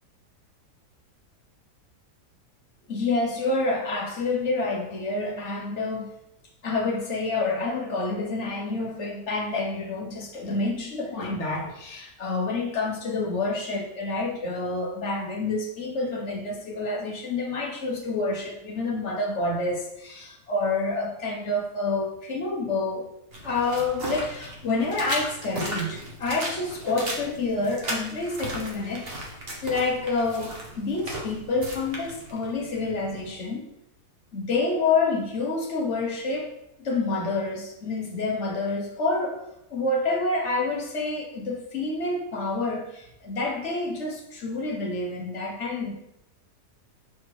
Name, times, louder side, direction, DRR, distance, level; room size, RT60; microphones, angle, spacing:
voice 1, 2.9-6.1 6.6-23.1 23.4-29.1 29.6-33.7 34.3-36.5 36.8-39.4 39.7-45.9, left 3 dB, 45° left, 0 dB, 1.5 m, -28 dB
sound 1, 23.3-33.3, right 1 dB, 40° right, 1.6 m, -37 dB
7.1 x 4.4 x 4.9 m, 0.83 s
omnidirectional pair, 1.7 m